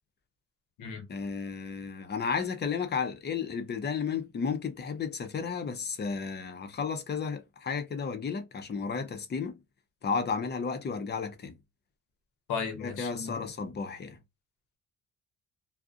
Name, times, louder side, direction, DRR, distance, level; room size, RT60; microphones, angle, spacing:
voice 1, 1.1-9.6 10.0-11.6 12.8-14.2, left 5 dB, 35° left, 0.6 m, -33 dB
voice 2, 12.5-13.4, left 6 dB, 90° left, 0.8 m, -35 dB
2.5 x 2.1 x 2.4 m
cardioid pair, 90°, 30 cm